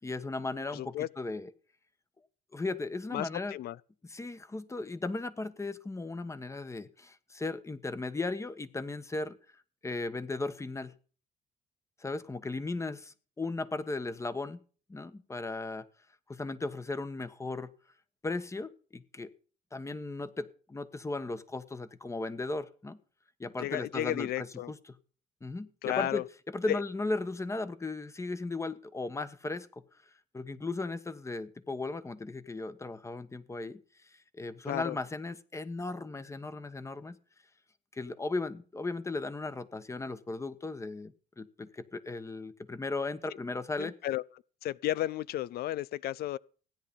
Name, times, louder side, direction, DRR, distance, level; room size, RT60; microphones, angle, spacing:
voice 1, 0.0-1.5 2.5-3.5 4.0-9.4 9.8-10.9 12.0-14.6 14.9-15.8 16.3-17.7 18.2-19.3 19.7-23.0 23.4-24.8 25.4-26.2 26.5-29.8 30.3-33.8 34.1-37.2 37.9-43.9, left 3 dB, 15° left, 1.3 m, -36 dB
voice 2, 0.7-1.1 3.1-3.8 23.6-24.7 25.8-26.2 26.7-26.8 34.7-35.0 43.8-44.2 44.6-46.4, left 13 dB, 65° left, 0.6 m, -33 dB
16.5 x 10.0 x 5.3 m
cardioid pair, 110°, 17 cm